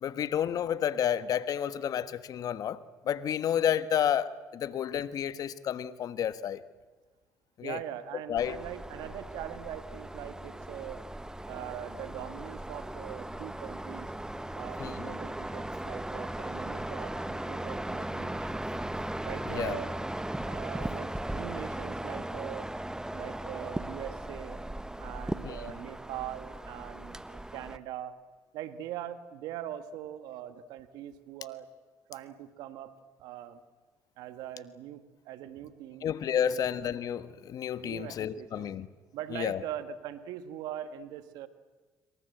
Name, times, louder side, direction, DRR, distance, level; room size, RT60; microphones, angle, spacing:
voice 1, 0.0-2.8 3.0-6.6 7.6-7.8 8.3-8.6 14.8-15.1 19.5-19.8 25.4-25.7 36.0-38.9 39.3-39.6, left 9 dB, 60° left, 14 dB, 1.3 m, -31 dB
voice 2, 7.6-11.0 11.5-14.1 14.5-18.6 19.2-19.9 20.5-22.7 23.1-24.6 25.0-28.2 28.5-31.7 32.1-32.9 33.2-33.6 34.2-36.1 36.3-36.6 37.8-38.7 39.1-41.5, right 11 dB, 75° right, 11 dB, 1.7 m, -42 dB
sound 1, 8.4-27.8, right 1 dB, 10° right, 1.4 m, -37 dB
26.5 x 24.0 x 7.9 m, 1.3 s
hypercardioid pair, 60°, 7 cm